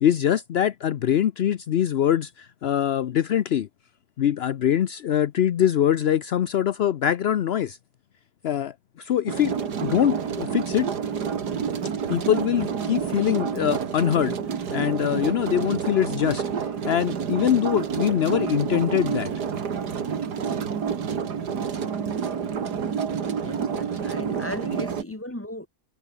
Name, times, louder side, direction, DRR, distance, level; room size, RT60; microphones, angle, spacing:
voice 1, 0.0-3.7 4.2-7.8 8.4-9.5 9.8-10.9 12.1-14.4 14.7-19.3, left 10 dB, 60° left, 0.7 m, -23 dB
sound 1, 9.3-25.0, right 7 dB, 85° right, 2.3 m, -29 dB
voice 2, 23.4-25.7, left 1 dB, 10° left, 3.9 m, -36 dB
omnidirectional pair, 1.7 m